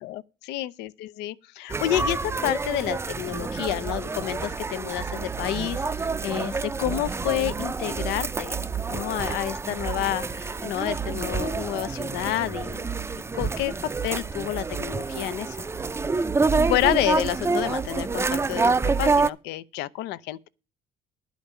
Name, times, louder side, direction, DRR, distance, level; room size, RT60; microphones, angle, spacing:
voice 1, 0.0-5.8 6.2-8.6 8.9-13.0 13.3-15.7 16.7-20.5, left 15 dB, 90° left, 0.6 m, -29 dB
sound 1, 1.7-19.3, right 4 dB, 15° right, 0.4 m, -27 dB
11.0 x 5.2 x 8.1 m
cardioid pair, 110°, 17 cm